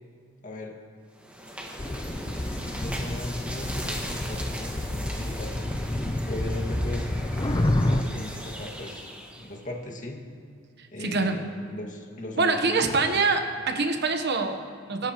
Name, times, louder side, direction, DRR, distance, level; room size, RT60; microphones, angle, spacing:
voice 1, 0.4-0.8 2.3-5.8 6.3-7.1 7.6-9.1 9.3-10.2 10.9-13.3, left 1 dB, 40° left, 0 dB, 2.0 m, -38 dB
sound 1, 1.2-9.6, equal, 5° right, 1.6 m, -37 dB
sound 2, 1.8-8.0, left 1 dB, 20° left, 0.5 m, -29 dB
voice 2, 11.0-11.4 12.4-15.1, right 4 dB, 55° right, 5 dB, 1.1 m, -25 dB
25.5 x 13.5 x 3.1 m, 2.2 s
head